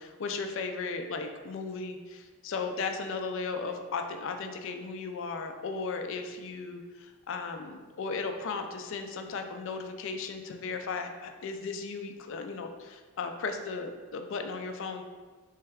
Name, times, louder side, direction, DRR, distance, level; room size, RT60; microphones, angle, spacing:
voice 1, 0.0-15.0, left 4 dB, 60° left, 6 dB, 0.4 m, -36 dB
3.3 x 3.2 x 3.4 m, 1.4 s
head